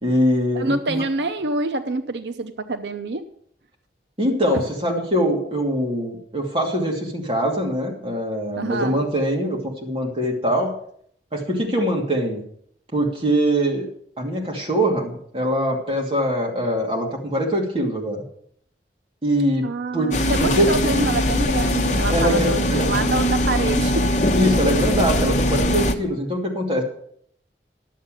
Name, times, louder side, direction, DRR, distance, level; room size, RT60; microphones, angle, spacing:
voice 1, 0.0-1.0 4.2-10.7 11.3-12.4 12.9-13.9 14.2-18.2 19.2-19.7 19.9-20.1 20.4-20.7 22.1-22.9 24.3-26.8, equal, 30° right, -1 dB, 2.6 m, -22 dB
voice 2, 0.5-3.2 8.6-9.0 19.6-24.1, right 2 dB, 80° right, 9 dB, 0.7 m, -26 dB
sound 1, 20.1-25.9, left 1 dB, 40° left, 1.0 m, -21 dB
11.0 x 7.5 x 7.6 m, 0.66 s
head